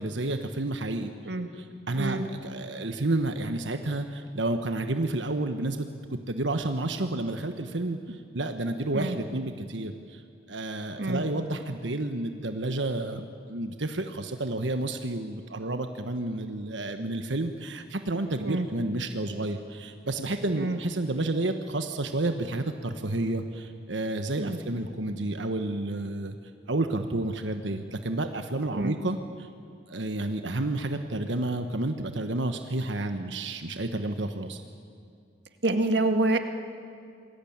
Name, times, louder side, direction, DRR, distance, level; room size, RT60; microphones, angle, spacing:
voice 1, 0.0-1.1 1.5-5.9 6.3-10.2 10.5-26.4 26.7-29.5 29.9-34.6, right 2 dB, 80° right, 7 dB, 1.4 m, -30 dB
voice 2, 35.6-36.4, right 2 dB, 65° right, 6 dB, 2.0 m, -27 dB
28.0 x 21.5 x 8.9 m, 2.4 s
head